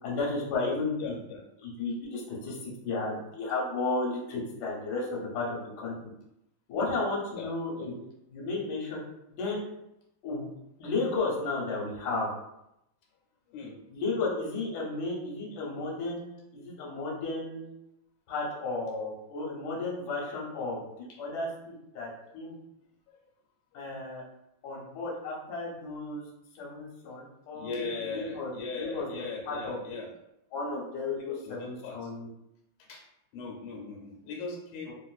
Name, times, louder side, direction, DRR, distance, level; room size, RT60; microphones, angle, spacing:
voice 1, 0.0-1.1 1.6-5.9 6.7-7.9 8.3-9.0 9.3-9.6 10.2-10.5 10.8-12.3 13.9-17.7 18.3-22.6 23.7-24.2 24.6-26.2 26.6-28.5 28.8-29.8 30.5-32.3 34.9-35.0, left 3 dB, 60° left, -3 dB, 1.2 m, -33 dB
voice 2, 0.6-1.4 7.4-7.5 7.8-8.0 13.5-13.8 23.1-23.2 27.5-30.1 31.2-32.1 32.8-33.0 33.3-34.9, left 4 dB, 80° left, -1 dB, 1.5 m, -39 dB
3.0 x 2.8 x 2.3 m, 0.84 s
omnidirectional pair, 2.3 m